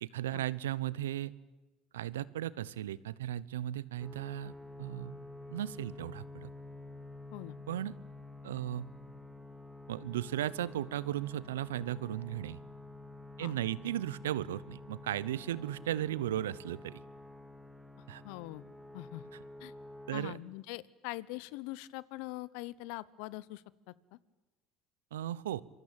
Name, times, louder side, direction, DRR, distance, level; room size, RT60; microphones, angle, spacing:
voice 1, 0.0-1.3 1.9-4.5 4.8-5.2 5.5-6.5 7.7-7.9 8.4-8.9 9.9-12.6 13.4-17.0 18.1-18.2 20.1-20.4 25.1-25.6, right 12 dB, 90° right, 20 dB, 0.9 m, -36 dB
sound 1, 4.0-20.1, left 2 dB, 5° right, 2.6 m, -49 dB
voice 2, 18.2-18.6 18.9-19.2 19.6-19.7 20.1-24.2, left 19 dB, 70° left, 21 dB, 1.0 m, -43 dB
27.0 x 23.0 x 9.0 m, 1.1 s
hypercardioid pair, 75°, 0 cm